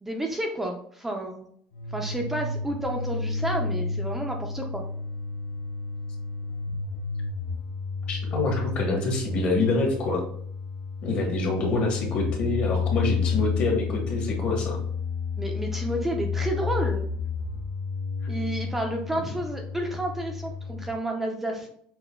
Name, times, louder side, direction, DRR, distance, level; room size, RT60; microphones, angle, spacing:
voice 1, 0.0-1.5 1.9-4.8 15.4-17.0 18.3-21.7, right 1 dB, 10° right, 2 dB, 0.3 m, -31 dB
sound 1, 1.7-20.9, left 5 dB, 75° left, 0.5 m, -31 dB
voice 2, 8.1-10.2 11.0-14.8, left 2 dB, 45° left, 1 dB, 0.9 m, -26 dB
5.9 x 2.1 x 2.2 m, 0.64 s
cardioid pair, 155°, 3 cm